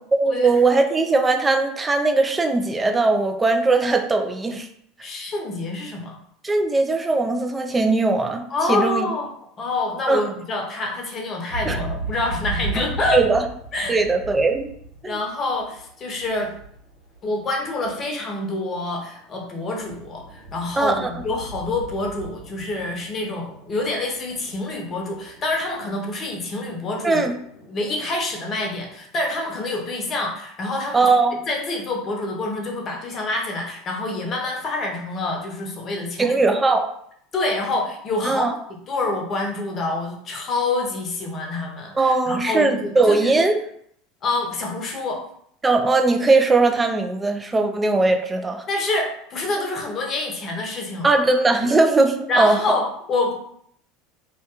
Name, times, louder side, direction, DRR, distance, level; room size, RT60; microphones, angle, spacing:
voice 1, 0.1-4.7 6.4-9.1 10.1-10.2 11.7-11.8 13.1-13.4 13.9-14.7 15.0-15.2 20.8-21.1 27.0-27.3 30.9-31.4 36.2-36.9 38.2-38.5 42.0-43.6 45.6-48.6 51.0-52.6, right 3 dB, 15° right, 5 dB, 0.4 m, -19 dB
voice 2, 5.0-6.2 8.5-9.3 9.6-13.2 13.7-13.9 15.0-16.5 17.2-27.3 27.7-31.1 31.5-36.4 37.3-38.5 38.9-43.3 44.2-45.2 48.7-51.2 52.3-53.3, left 2 dB, 35° left, 1 dB, 0.7 m, -27 dB
sound 1, 11.5-17.4 17.7-18.4 18.8-28.9, right 2 dB, 85° left, 0.7 m, -37 dB
2.4 x 2.2 x 2.9 m, 0.68 s
hypercardioid pair, 80°, 0 cm